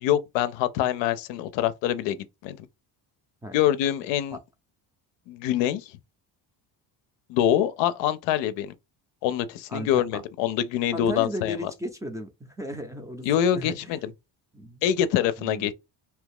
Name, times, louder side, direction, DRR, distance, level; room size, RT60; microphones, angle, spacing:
voice 1, 0.0-2.2 2.4-2.7 3.5-4.4 5.3-6.0 7.3-8.7 9.2-11.7 13.2-14.1 14.8-15.7, left 11 dB, 90° left, 0.6 m, -25 dB
voice 2, 9.7-10.2 10.9-12.3 12.6-14.1 14.5-14.8 15.4-15.7, left 1 dB, 10° right, 0.4 m, -35 dB
2.8 x 2.3 x 3.4 m
cardioid pair, 125°, 42 cm